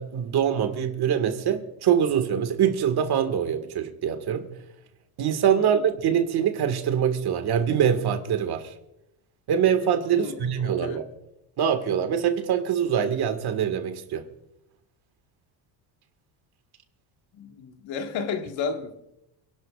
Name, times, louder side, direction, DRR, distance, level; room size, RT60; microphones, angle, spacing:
voice 1, 0.0-4.5 5.2-8.7 9.5-11.0 11.6-14.3, right 8 dB, 50° right, 1.9 m, -24 dB
voice 2, 10.1-11.0 17.3-18.9, left 5 dB, 70° left, 1.8 m, -33 dB
29.5 x 11.5 x 2.5 m
cardioid pair, 120°, 47 cm